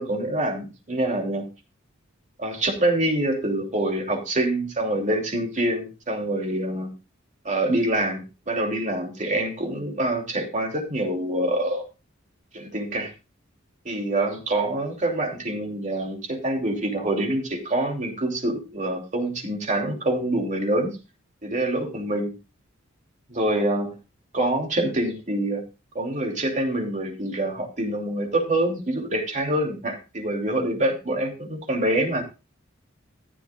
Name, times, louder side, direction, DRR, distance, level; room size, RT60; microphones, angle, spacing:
voice 1, 0.0-1.5 2.4-6.9 7.5-11.8 12.5-13.1 13.8-20.9 21.4-22.3 23.3-23.9 24.3-25.6 25.9-32.2, right 1 dB, 40° right, 2 dB, 2.9 m, -26 dB
14.5 x 11.5 x 2.4 m, 0.30 s
head